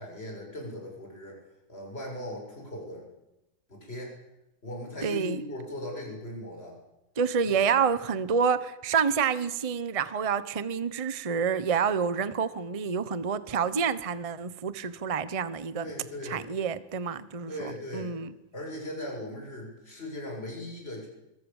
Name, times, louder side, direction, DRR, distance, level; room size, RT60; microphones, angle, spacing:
voice 1, 0.0-1.4 1.7-3.1 3.7-4.2 4.6-6.8 7.4-7.5 15.8-16.5 17.5-18.1 18.5-21.1, left 1 dB, 30° left, 0 dB, 7.4 m, -38 dB
voice 2, 5.0-5.4 7.2-15.9 16.2-18.3, right 6 dB, 25° right, 14 dB, 0.7 m, -28 dB
26.0 x 23.0 x 7.3 m, 0.95 s
omnidirectional pair, 2.2 m